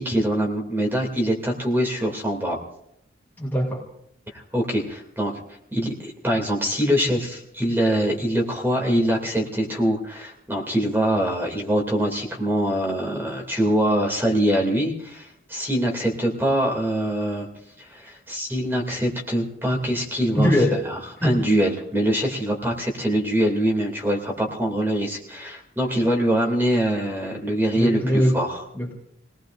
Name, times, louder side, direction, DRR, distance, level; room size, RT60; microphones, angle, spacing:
voice 1, 0.0-2.6 4.5-5.4 5.7-17.5 17.8-20.6 20.8-28.6, equal, 10° right, 0 dB, 2.6 m, -24 dB
voice 2, 3.4-3.8 20.3-20.8 21.2-21.3 27.7-28.4 28.8-28.9, equal, 10° left, -3 dB, 2.2 m, -21 dB
29.0 x 19.0 x 2.6 m, 0.75 s
head